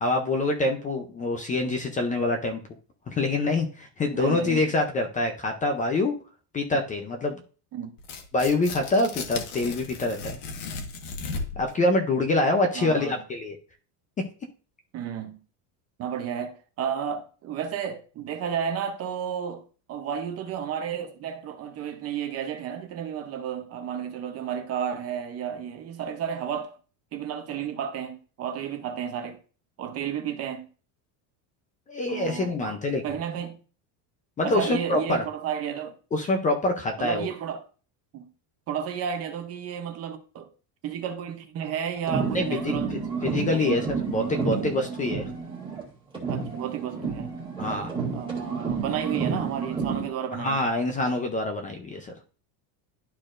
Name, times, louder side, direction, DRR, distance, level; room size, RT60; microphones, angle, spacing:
voice 1, 0.0-2.6 3.1-6.2 6.5-7.4 8.3-10.4 11.6-13.6 31.9-33.0 34.4-35.2 36.1-37.3 42.3-45.2 47.6-47.9 50.4-52.1, left 2 dB, 15° left, 0.5 m, -25 dB
voice 2, 4.1-4.6 7.7-7.9 12.7-13.2 14.9-15.4 16.0-26.8 27.1-29.4 29.8-30.7 32.1-32.8 33.0-33.6 34.4-36.0 37.0-37.6 38.1-38.3 38.7-40.5 40.8-43.0 43.5-43.8 46.3-47.3 48.1-50.6, right 8 dB, 30° right, 0.6 m, -32 dB
Tearing, 8.0-11.7, left 4 dB, 60° left, 1.4 m, -36 dB
sound 1, 42.0-45.9 46.1-50.1, right 5 dB, 10° right, 1.9 m, -30 dB
12.0 x 4.3 x 2.5 m
cardioid pair, 160°, 47 cm